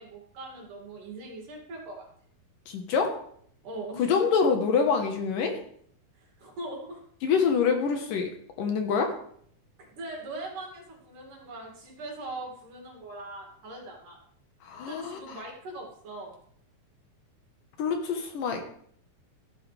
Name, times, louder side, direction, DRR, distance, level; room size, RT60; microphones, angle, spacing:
voice 1, 0.0-2.1 3.6-4.1 6.2-7.0 10.0-14.2 14.9-16.3, right 2 dB, 65° right, -1 dB, 4.1 m, -41 dB
voice 2, 2.7-3.2 4.0-5.6 7.2-8.3 8.6-9.1 14.6-15.4 17.8-18.6, left 5 dB, 75° left, 4 dB, 2.9 m, -26 dB
14.5 x 12.0 x 3.4 m, 0.63 s
omnidirectional pair, 4.0 m